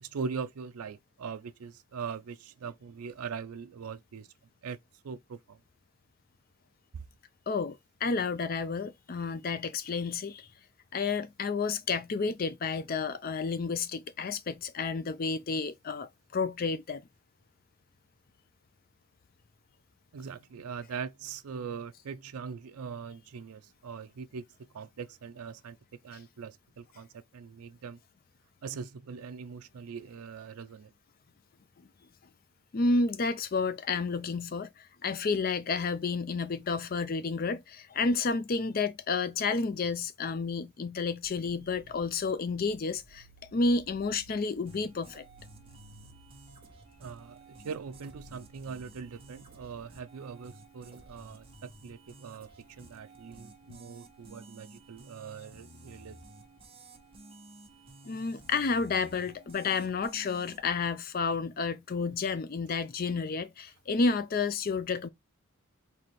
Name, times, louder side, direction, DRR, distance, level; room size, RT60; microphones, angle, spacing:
voice 1, 0.0-4.3 4.6-4.8 5.0-5.6 20.1-24.4 24.7-25.8 26.0-28.0 28.6-30.9 47.0-56.2 61.2-61.4, right 6 dB, 85° right, 0.4 m, -41 dB
voice 2, 7.5-10.5 10.9-17.0 32.7-43.3 43.5-45.2 58.1-65.1, left 4 dB, 40° left, 0.4 m, -31 dB
sound 1, 41.2-49.8, right 3 dB, 50° right, 1.2 m, -58 dB
sound 2, 44.7-60.7, right 2 dB, 25° right, 1.2 m, -53 dB
4.2 x 3.3 x 3.0 m
head